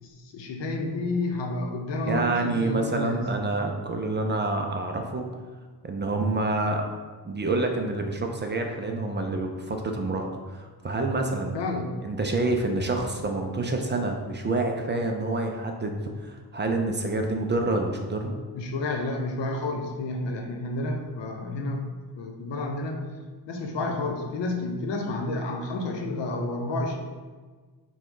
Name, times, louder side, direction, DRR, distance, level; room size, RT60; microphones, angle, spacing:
voice 1, 0.0-3.3 11.5-12.0 18.5-23.0 23.5-27.0, left 2 dB, 80° left, 3 dB, 0.8 m, -30 dB
voice 2, 2.1-5.3 5.8-6.8 7.2-11.5 12.0-18.4, right 2 dB, 30° right, 3 dB, 0.4 m, -27 dB
6.1 x 2.3 x 3.7 m, 1.4 s
wide cardioid pair, 135°, 42 cm